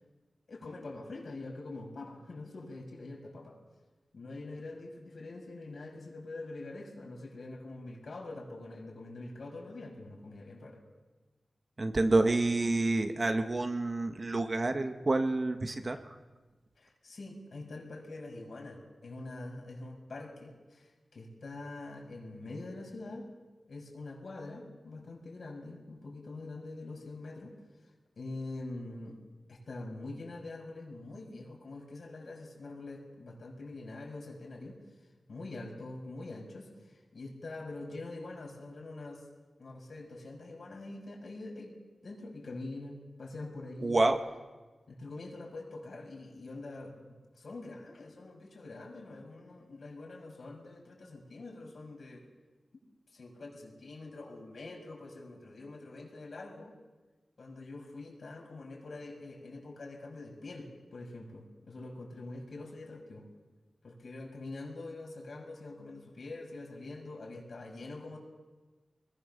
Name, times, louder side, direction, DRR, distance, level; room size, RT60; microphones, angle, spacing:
voice 1, 0.5-3.6 4.1-10.8 16.8-23.3 23.7-27.5 28.2-29.2 29.5-34.8 35.3-39.2 39.6-44.0 44.9-52.3 53.1-56.7 57.4-63.2 63.8-68.2, left 2 dB, 70° left, 1 dB, 6.3 m, -44 dB
voice 2, 11.8-16.2 43.8-44.2, right 2 dB, 45° right, 6 dB, 1.9 m, -28 dB
24.5 x 21.0 x 7.0 m, 1.3 s
wide cardioid pair, 65°, 0 cm